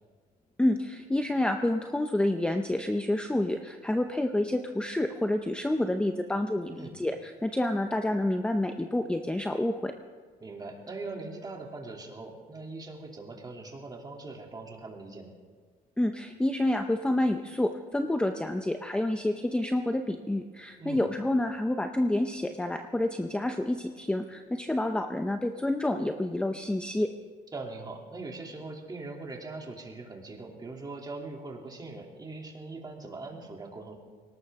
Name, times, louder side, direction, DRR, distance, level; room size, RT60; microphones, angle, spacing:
voice 1, 0.6-9.9 16.0-27.1, left 1 dB, 5° left, 6 dB, 0.7 m, -28 dB
voice 2, 6.7-7.0 10.4-15.3 20.8-21.0 27.5-34.0, right 3 dB, 25° right, 0 dB, 2.9 m, -41 dB
21.5 x 18.5 x 3.7 m, 1.5 s
cardioid pair, 110°, 17 cm